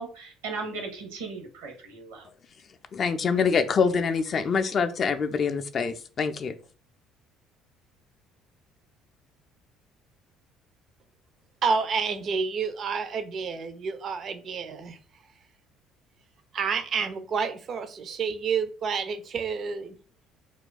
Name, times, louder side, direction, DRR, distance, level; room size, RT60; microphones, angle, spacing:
voice 1, 0.0-2.3, right 4 dB, 70° right, 0.7 m, -37 dB
voice 2, 2.9-6.5, left 5 dB, 40° left, 0.3 m, -25 dB
voice 3, 11.6-15.0 16.5-20.0, right 5 dB, 45° right, 0.4 m, -29 dB
2.3 x 2.2 x 3.8 m
figure-of-eight pair, 55°, 0 cm